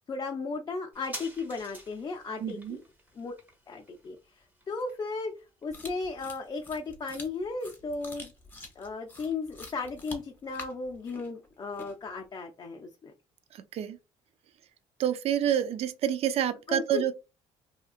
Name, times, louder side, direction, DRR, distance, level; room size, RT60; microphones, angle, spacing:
voice 1, 0.1-2.8 3.1-3.3 3.7-4.2 4.7-5.3 5.6-8.3 8.8-13.1 16.7-17.1, left 3 dB, 35° left, 0.5 m, -35 dB
sound 1, 0.9-8.0 8.3-8.4, equal, 15° right, 1.0 m, -49 dB
voice 2, 2.4-2.8 13.7-14.0 15.0-17.1, right 10 dB, 55° right, 0.4 m, -28 dB
sound 2, 5.7-12.2, left 2 dB, 15° left, 0.9 m, -47 dB
2.8 x 2.4 x 2.4 m
cardioid pair, 90°, 12 cm